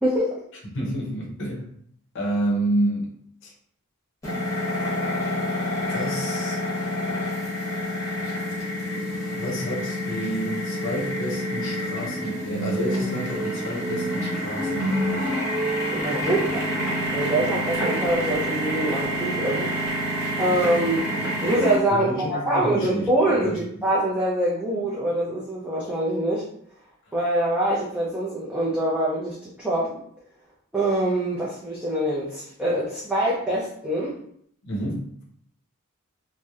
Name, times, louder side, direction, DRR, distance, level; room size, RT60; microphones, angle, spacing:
voice 1, 0.0-0.4 15.9-16.7 17.1-19.7 20.4-21.0 21.4-26.5 27.1-30.0 30.7-34.1, right 1 dB, 5° right, -7 dB, 0.4 m, -24 dB
voice 2, 0.7-1.7 2.1-3.2 3.4-3.5 5.9-6.6 8.9-15.4 17.4-17.5 20.5-20.7 21.9-23.8 27.1-27.2 34.6-35.1, right 1 dB, 60° left, -2 dB, 0.7 m, -30 dB
sound 1, 4.2-21.8, equal, 15° left, 0.9 m, -27 dB
2.7 x 2.0 x 2.3 m, 0.67 s
head